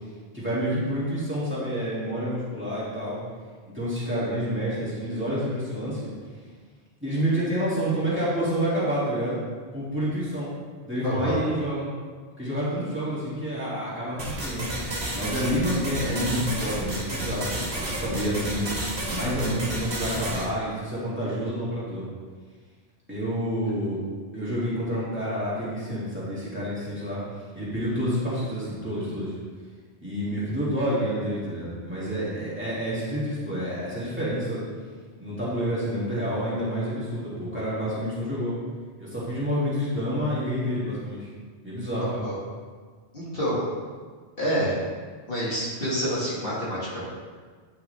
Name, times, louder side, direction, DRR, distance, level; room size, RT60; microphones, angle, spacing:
voice 1, 0.3-3.2 3.7-6.0 7.0-9.4 9.7-10.5 10.8-11.9 12.4-14.7 15.1-18.7 19.1-22.0 23.1-24.0 24.3-27.2 27.5-29.3 30.0-34.6 35.2-38.5 39.0-41.3 41.6-42.1, equal, 10° right, -10 dB, 2.4 m, -28 dB
voice 2, 11.0-11.4 42.0-42.4 43.1-43.7 44.4-44.8 45.3-47.0, equal, 60° left, -7 dB, 2.2 m, -27 dB
sound 1, 14.2-20.5, right 1 dB, 60° right, 1.6 m, -31 dB
9.2 x 5.8 x 3.4 m, 1.5 s
omnidirectional pair, 1.1 m